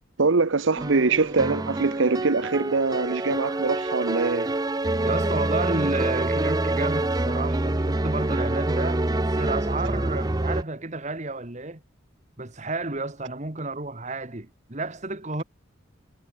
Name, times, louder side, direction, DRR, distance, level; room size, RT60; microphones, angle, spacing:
voice 1, 0.2-4.5, right 4 dB, 65° right, 0.8 m, -23 dB
sound 1, 0.8-10.6, right 2 dB, 20° right, 0.6 m, -26 dB
voice 2, 5.0-11.8 12.4-15.4, right 2 dB, 35° right, 1.6 m, -31 dB
head